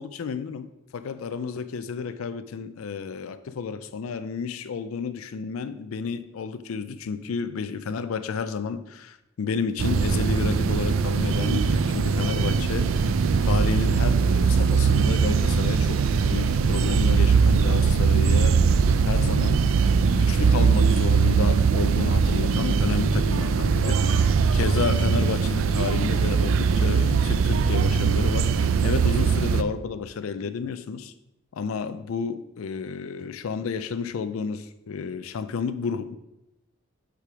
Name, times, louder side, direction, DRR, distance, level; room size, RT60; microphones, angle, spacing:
voice 1, 0.0-13.1 13.4-16.0 16.3-18.6 19.1-19.7 20.0-31.1 31.5-36.2, left 5 dB, 80° left, 12 dB, 0.4 m, -31 dB
sound 1, 9.8-29.6, right 5 dB, 70° right, 0.4 m, -21 dB
6.7 x 4.9 x 4.8 m, 0.91 s
head